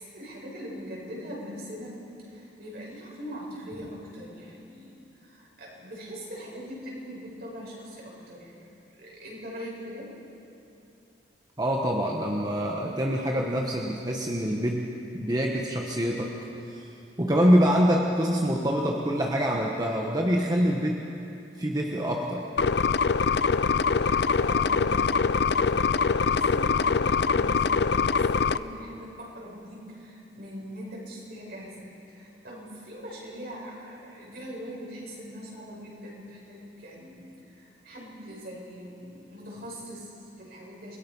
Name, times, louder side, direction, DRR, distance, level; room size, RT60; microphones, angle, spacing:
voice 1, 0.0-8.6 9.0-10.1 22.7-41.0, equal, 60° right, -4 dB, 7.4 m, -42 dB
voice 2, 11.6-16.3 16.7-16.8 17.2-21.0 21.6-22.5, equal, 20° right, -1 dB, 1.4 m, -25 dB
sound 1, 22.6-28.6, left 5 dB, 65° left, 0.5 m, -23 dB
29.0 x 22.0 x 5.6 m, 2.8 s
head